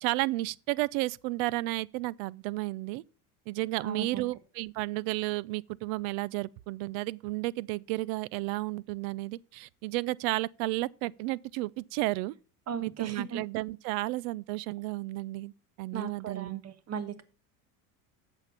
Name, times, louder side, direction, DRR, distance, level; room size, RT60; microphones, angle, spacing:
voice 1, 0.0-3.0 3.5-12.3 12.8-15.5 15.8-16.6, right 19 dB, 70° right, 0.6 m, -32 dB
voice 2, 3.8-4.3 12.7-13.4 15.9-17.2, right 7 dB, 35° right, 1.3 m, -37 dB
8.1 x 7.0 x 5.7 m
supercardioid pair, 95°, 43 cm